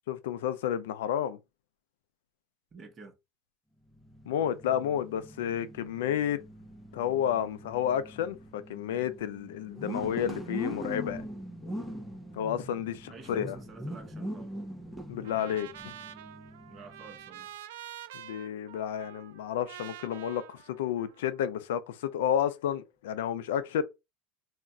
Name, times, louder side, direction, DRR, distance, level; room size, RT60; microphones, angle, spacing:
voice 1, 0.1-1.4 4.3-6.4 6.9-11.2 12.3-13.6 15.1-15.9 18.1-23.8, left 9 dB, 90° left, 0.4 m, -31 dB
voice 2, 2.7-3.2 13.1-14.5 16.7-17.5, right 4 dB, 25° right, 0.9 m, -50 dB
sound 1, 3.9-17.3, equal, ahead, 0.6 m, -42 dB
Trumpet, 15.2-21.5, right 11 dB, 90° right, 0.3 m, -47 dB
2.3 x 2.1 x 3.6 m
supercardioid pair, 135°, 0 cm